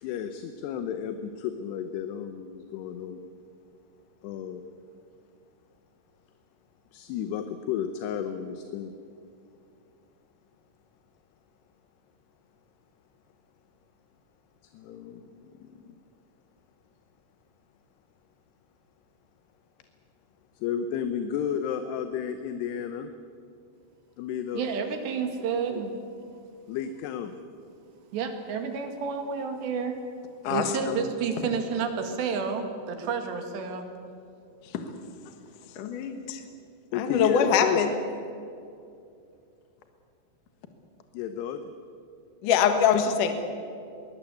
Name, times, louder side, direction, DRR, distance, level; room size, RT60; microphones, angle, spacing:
voice 1, 0.0-3.2 4.2-4.6 6.9-9.0 14.7-15.9 20.6-23.1 24.2-24.6 25.7-25.8 26.7-27.3 36.9-37.8 41.1-41.6, left 8 dB, 75° left, 8 dB, 2.8 m, -32 dB
voice 2, 24.5-25.9 28.1-30.0 30.5-33.9, right 5 dB, 75° right, 5 dB, 4.1 m, -30 dB
voice 3, 30.4-31.0 34.7-34.8 35.8-36.4 36.9-37.9 42.4-43.3, left 7 dB, 60° left, 6 dB, 2.6 m, -24 dB
22.5 x 19.5 x 8.3 m, 2.5 s
omnidirectional pair, 5.1 m